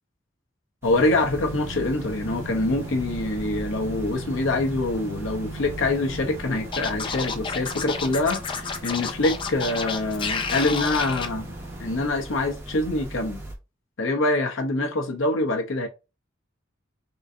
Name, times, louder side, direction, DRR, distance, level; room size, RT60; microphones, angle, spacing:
voice 1, 0.8-13.4 14.0-15.9, left 2 dB, 65° left, 0.7 m, -25 dB
sound 1, 0.8-13.5, right 1 dB, 10° right, 0.7 m, -40 dB
sound 2, 0.9-12.1, right 1 dB, 65° right, 0.9 m, -39 dB
Scratching (performance technique), 6.7-11.3, left 5 dB, 25° left, 0.3 m, -30 dB
3.7 x 2.6 x 2.6 m
head